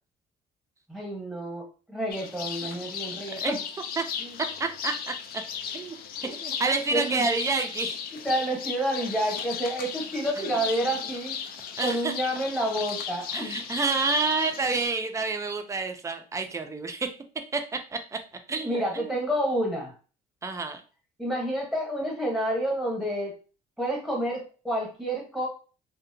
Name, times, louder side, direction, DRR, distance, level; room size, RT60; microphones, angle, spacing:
voice 1, 0.9-3.6 4.2-4.4 6.9-7.2 8.1-11.4 11.8-13.6 18.6-19.9 21.2-23.4 23.8-25.5, right 1 dB, ahead, -1 dB, 0.9 m, -29 dB
sound 1, 2.1-14.9, left 7 dB, 60° left, 0.4 m, -36 dB
voice 2, 4.4-5.4 5.7-6.0 6.3-8.0 11.8-12.1 13.3-17.1 17.5-17.6 17.9-18.2 18.5-19.2 20.4-20.8, right 4 dB, 20° right, 6 dB, 0.4 m, -29 dB
2.7 x 2.1 x 2.6 m, 0.37 s
cardioid pair, 110°, 17 cm